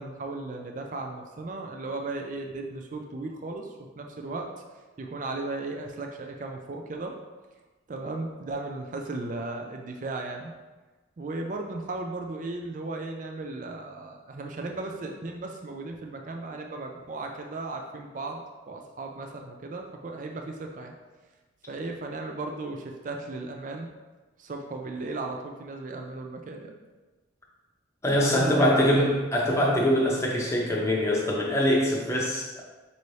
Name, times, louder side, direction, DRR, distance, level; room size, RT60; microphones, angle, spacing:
voice 1, 0.0-3.7 4.0-4.5 5.0-7.2 7.9-10.5 11.2-20.9 21.7-23.9 24.4-26.8 28.1-28.9, right 2 dB, 40° right, 2 dB, 0.4 m, -36 dB
voice 2, 28.0-32.6, equal, 15° left, -3 dB, 0.7 m, -23 dB
5.4 x 2.7 x 3.2 m, 1.2 s
head